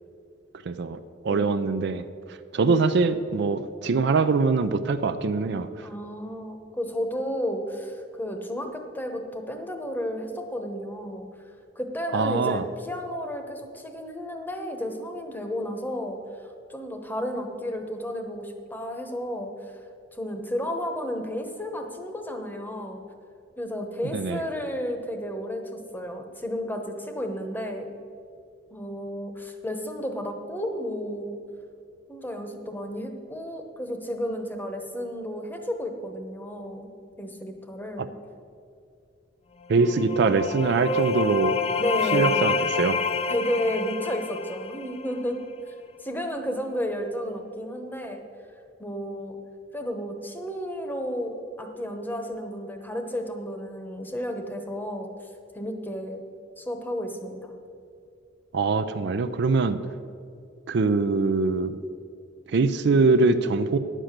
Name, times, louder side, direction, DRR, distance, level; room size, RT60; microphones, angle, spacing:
voice 1, 0.7-2.0 2.5-5.9 12.1-12.6 24.1-24.4 38.0-38.1 39.7-41.6 42.1-43.0 58.5-59.8 60.7-61.8 62.5-63.8, right 4 dB, 60° right, 11 dB, 0.4 m, -23 dB
voice 2, 5.8-11.3 11.8-16.2 16.7-19.5 20.2-23.0 23.6-27.9 28.7-31.4 32.1-36.9 37.2-38.1 41.8-42.5 43.3-45.4 46.0-48.2 48.8-49.4 49.7-55.1 55.5-56.2 56.6-57.5, equal, 10° left, 5 dB, 0.9 m, -32 dB
sound 1, 39.7-45.4, left 4 dB, 30° left, 0.5 m, -28 dB
10.0 x 7.5 x 6.5 m, 2.4 s
head